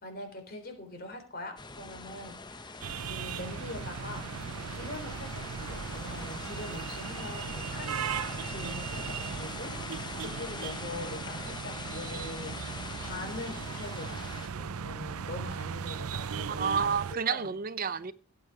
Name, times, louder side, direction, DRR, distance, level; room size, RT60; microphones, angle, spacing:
voice 1, 0.0-4.2 4.7-14.3 14.6-17.6, left 2 dB, 45° left, 3.7 m, -43 dB
sound 1, 1.6-14.5, left 4 dB, 20° left, 0.8 m, -43 dB
sound 2, 2.8-17.2, right 6 dB, 90° right, 0.6 m, -38 dB
voice 2, 16.5-18.1, right 6 dB, 40° right, 0.5 m, -30 dB
17.0 x 8.2 x 4.8 m
head